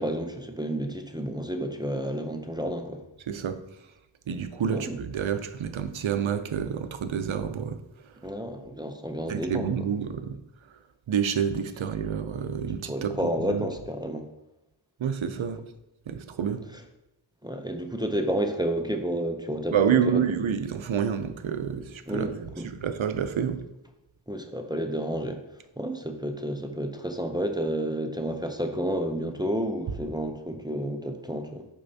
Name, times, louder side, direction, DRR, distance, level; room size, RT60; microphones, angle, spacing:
voice 1, 0.0-3.0 4.7-5.0 8.2-9.9 12.8-14.3 16.7-16.8 17.4-20.3 22.1-22.7 24.3-25.4 25.8-31.6, equal, 10° right, 5 dB, 0.5 m, -30 dB
voice 2, 4.3-7.8 9.3-10.4 11.1-13.1 13.5-13.7 15.0-15.6 16.1-16.6 19.7-22.3 22.8-23.6, right 7 dB, 80° right, 9 dB, 0.6 m, -28 dB
6.4 x 5.5 x 2.7 m, 0.94 s
wide cardioid pair, 50°, 47 cm